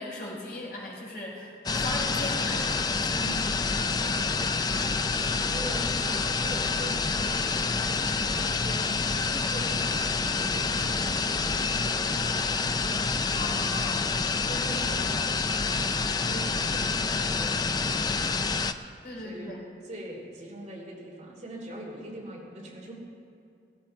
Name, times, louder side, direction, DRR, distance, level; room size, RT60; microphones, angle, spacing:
voice 1, 0.0-3.4 13.3-14.0 14.7-15.0 19.0-19.6, left 2 dB, 55° left, -3 dB, 4.0 m, -38 dB
sound 1, 1.7-18.7, left 4 dB, 20° left, 0.4 m, -27 dB
voice 2, 3.1-4.9 5.4-7.8 8.1-12.5 13.1-13.2 14.1-18.6 19.2-19.5 19.8-22.9, right 1 dB, 40° right, -2 dB, 3.0 m, -43 dB
16.0 x 16.0 x 4.4 m, 2.5 s
head